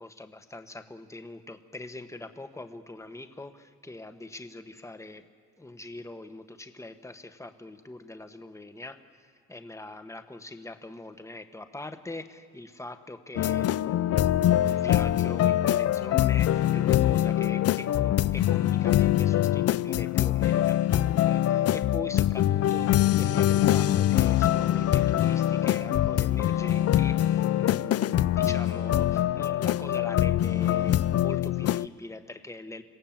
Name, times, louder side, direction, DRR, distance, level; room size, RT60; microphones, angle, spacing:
voice 1, 0.0-5.3 5.6-9.0 9.5-32.8, left 2 dB, 10° left, 8 dB, 1.4 m, -42 dB
sound 1, 13.4-31.9, left 12 dB, 55° left, 0.5 m, -24 dB
26.5 x 17.0 x 7.5 m, 2.2 s
cardioid pair, 90°, 30 cm